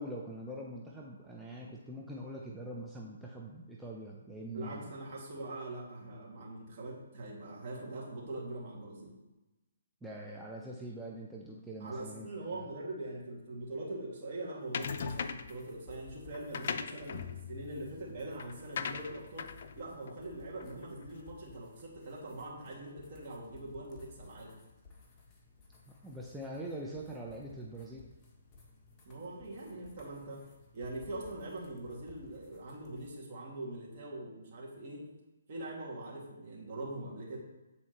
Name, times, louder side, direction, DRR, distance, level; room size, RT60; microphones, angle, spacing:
voice 1, 0.0-4.9 10.0-12.7 25.9-28.0 29.8-29.9, right 1 dB, 5° right, -4 dB, 0.6 m, -43 dB
voice 2, 4.5-9.1 11.8-19.5 19.8-24.5 29.1-30.4 30.7-35.0 35.5-37.4, right 2 dB, 45° right, -4 dB, 2.1 m, -42 dB
sound 1, 14.7-15.6 16.3-21.0, left 6 dB, 55° left, 0.4 m, -40 dB
sound 2, 14.8-33.1, left 4 dB, 20° left, 1.3 m, -58 dB
8.3 x 4.2 x 3.0 m, 1.1 s
hypercardioid pair, 145°, 0 cm